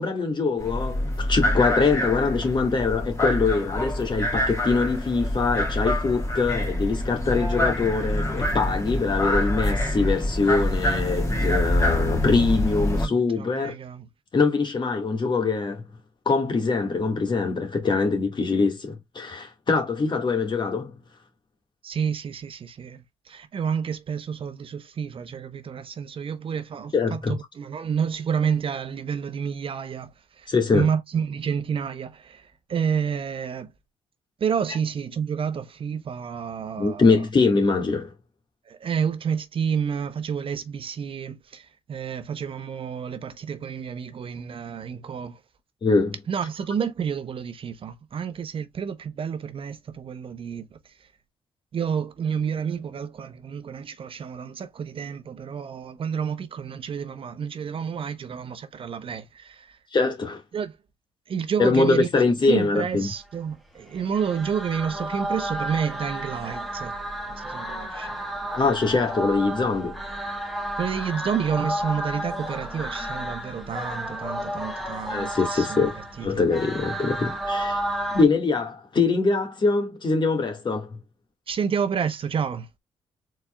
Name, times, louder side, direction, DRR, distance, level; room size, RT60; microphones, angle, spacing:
voice 1, 0.0-13.8 14.3-15.8 16.3-21.0 26.9-27.4 30.5-30.9 36.8-38.1 45.8-46.2 59.9-60.4 61.6-63.1 68.5-70.0 75.1-75.9 76.2-77.8 78.1-81.0, left 4 dB, 40° left, 1.7 m, -23 dB
sound 1, 0.6-13.1, left 1 dB, 25° left, 2.0 m, -26 dB
voice 2, 13.0-14.1 21.8-30.1 30.4-33.7 34.4-37.2 38.7-45.4 46.3-50.7 51.7-59.8 60.5-60.7 61.3-62.1 62.4-66.9 67.3-68.2 70.8-75.8 76.2-76.3 81.5-82.7, right 7 dB, 50° right, 0.8 m, -29 dB
sound 2, 63.9-78.2, right 1 dB, ahead, 1.6 m, -32 dB
4.4 x 4.2 x 2.3 m
supercardioid pair, 65°, 12 cm